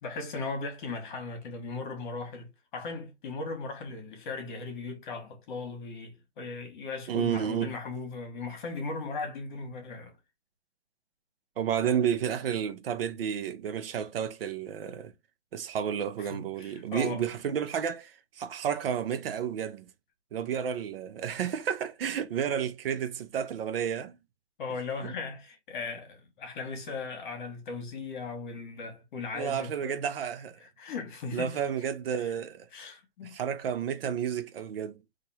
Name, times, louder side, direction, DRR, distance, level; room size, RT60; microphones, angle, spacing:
voice 1, 0.0-10.2 16.2-17.2 24.6-30.0 30.6-31.6 32.2-32.3 32.7-33.3, left 4 dB, 45° left, 1.4 m, -38 dB
voice 2, 7.1-7.7 11.6-15.1 15.5-19.9 20.3-24.2 25.0-25.1 29.3-30.6 31.3-32.7 33.2-35.0, right 8 dB, 55° right, 0.7 m, -31 dB
2.8 x 2.7 x 4.1 m
hypercardioid pair, 165°, 34 cm